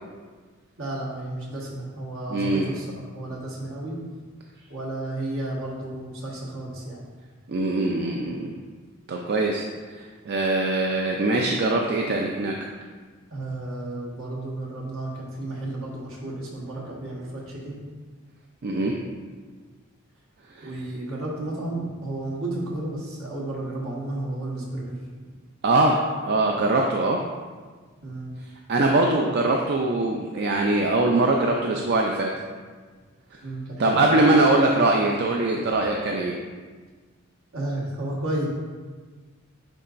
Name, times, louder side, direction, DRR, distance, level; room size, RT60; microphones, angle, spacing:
voice 1, 0.8-4.3 4.7-7.1 13.3-17.8 20.6-25.0 28.0-28.4 33.4-34.0 37.5-38.5, right 1 dB, 65° right, -4 dB, 1.4 m, -32 dB
voice 2, 2.3-2.7 7.5-8.5 9.1-12.5 18.6-18.9 20.6-20.7 25.6-27.2 28.7-32.3 33.8-36.3, right 2 dB, 50° right, 0 dB, 0.4 m, -22 dB
9.8 x 3.9 x 2.5 m, 1.4 s
head